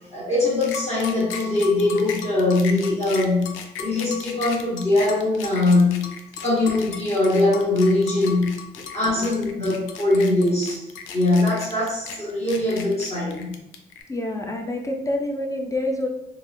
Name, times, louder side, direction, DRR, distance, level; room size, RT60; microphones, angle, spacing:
voice 1, 0.1-6.1 6.4-8.6 8.9-10.9 11.1-13.5, left 2 dB, 35° left, -6 dB, 1.2 m, -21 dB
sound 1, 0.6-14.0, left 7 dB, 85° left, 0.4 m, -36 dB
voice 2, 14.1-16.1, left 1 dB, 15° left, 1 dB, 0.4 m, -27 dB
3.4 x 2.1 x 2.6 m, 0.84 s
cardioid pair, 90°, 20 cm